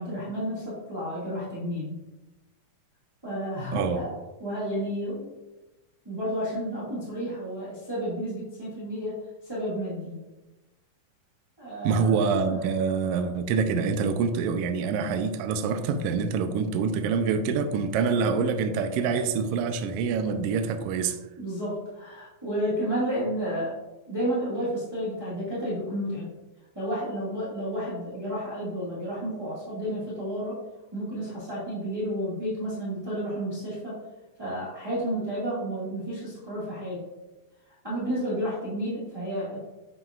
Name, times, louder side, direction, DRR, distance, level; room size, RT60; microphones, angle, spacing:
voice 1, 0.0-2.0 3.2-4.1 4.4-5.3 6.0-9.2 9.4-10.2 11.6-12.5 21.4-23.7 24.1-26.3 26.7-30.6 30.9-34.0 34.4-37.0 37.8-39.6, equal, 10° right, -9 dB, 1.4 m, -31 dB
voice 2, 11.8-21.2, right 5 dB, 90° right, 7 dB, 1.3 m, -26 dB
8.9 x 6.3 x 2.4 m, 1.1 s
omnidirectional pair, 3.5 m